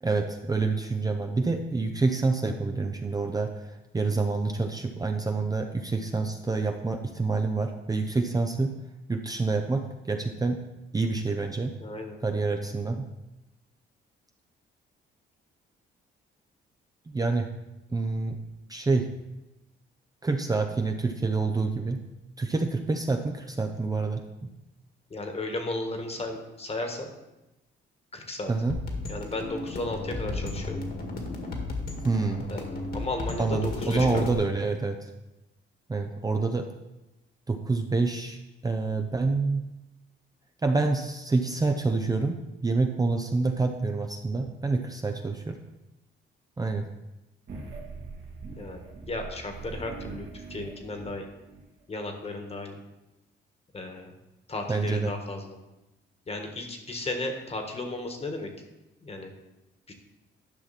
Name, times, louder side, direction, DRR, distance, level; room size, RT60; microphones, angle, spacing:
voice 1, 0.0-8.7 9.1-10.6 10.9-11.7 12.2-13.1 17.1-17.5 17.9-18.4 18.7-19.1 20.2-22.0 22.4-24.5 28.5-28.8 32.0-32.4 33.4-35.1 35.9-36.7 37.5-38.4 38.6-39.6 40.6-42.4 42.6-45.6 46.6-46.8 54.7-55.1, right 3 dB, 20° right, 4 dB, 0.6 m, -27 dB
voice 2, 11.8-12.2 25.1-27.1 28.1-28.5 29.1-30.8 32.5-32.7 32.9-34.3 48.6-51.3 51.9-52.8 53.7-54.1 54.5-55.6 56.3-58.5 59.0-59.3 59.9-60.0, left 2 dB, 30° left, 4 dB, 1.6 m, -34 dB
sound 1, 28.7-34.3, left 2 dB, 55° left, 1.9 m, -34 dB
sound 2, 47.5-51.6, right 4 dB, 65° right, 2.1 m, -42 dB
10.5 x 5.7 x 4.2 m, 0.98 s
cardioid pair, 90°, 20 cm